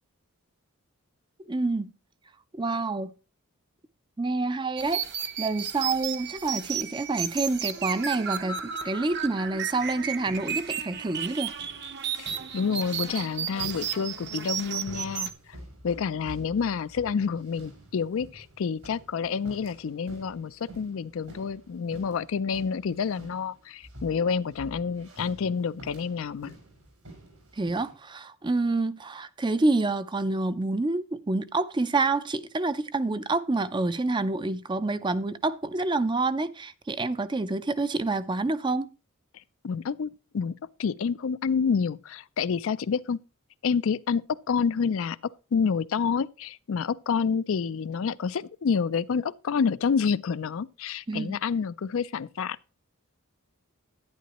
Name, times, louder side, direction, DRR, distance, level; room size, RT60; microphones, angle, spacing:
voice 1, 1.5-1.9 2.5-3.1 4.2-5.1 5.4-11.5 27.6-38.9 51.1-51.4, right 3 dB, 20° right, 0.5 m, -28 dB
sound 1, 4.8-15.3, right 8 dB, 50° right, 0.9 m, -33 dB
sound 2, 9.8-27.9, right 1 dB, 80° right, 5.1 m, -49 dB
voice 2, 12.2-15.6 15.8-26.5 39.6-43.2 43.6-45.2 45.5-52.6, left 6 dB, 65° left, 0.4 m, -28 dB
11.0 x 10.0 x 2.9 m
head